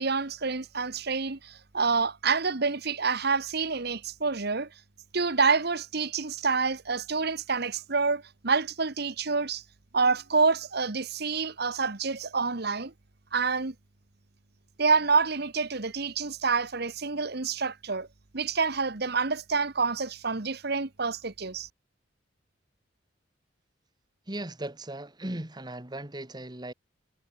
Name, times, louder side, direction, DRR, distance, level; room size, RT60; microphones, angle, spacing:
voice 1, 0.0-4.7 5.1-9.6 9.9-12.9 13.3-13.7 14.8-18.1 18.3-21.7, right 4 dB, 55° right, 1.4 m, -27 dB
voice 2, 24.3-26.7, right 1 dB, 20° right, 1.8 m, -37 dB
head